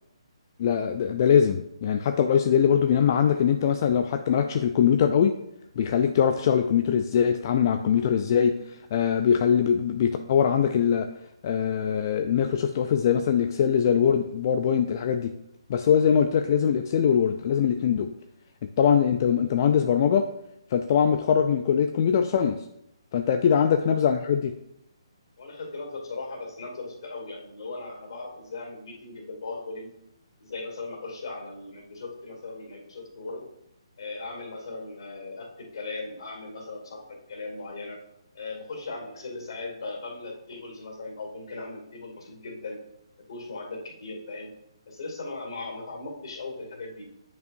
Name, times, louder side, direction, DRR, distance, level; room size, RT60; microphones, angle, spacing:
voice 1, 0.6-5.3 5.8-11.1 11.4-15.3 15.7-18.1 18.8-20.3 20.7-22.6 23.1-24.5, left 8 dB, 40° left, 7 dB, 0.4 m, -22 dB
voice 2, 25.4-29.9 30.4-33.5 34.0-38.0 38.3-42.8 43.3-44.5 44.9-47.1, left 3 dB, 55° left, 0 dB, 2.4 m, -38 dB
9.1 x 5.3 x 2.6 m, 0.80 s
figure-of-eight pair, 140°, 3 cm